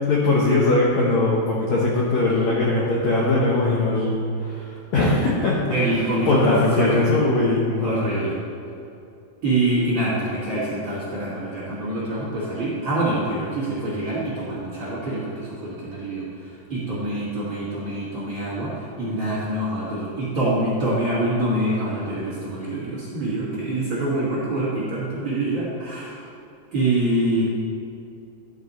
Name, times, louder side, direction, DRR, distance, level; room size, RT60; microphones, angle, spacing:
voice 1, 0.0-5.6 6.3-7.9, left 2 dB, 90° left, -4 dB, 1.5 m, -20 dB
voice 2, 5.7-7.1 7.8-8.4 9.4-26.2 26.7-27.4, right 1 dB, 40° right, -9 dB, 1.9 m, -25 dB
12.5 x 6.4 x 4.2 m, 2.6 s
omnidirectional pair, 4.7 m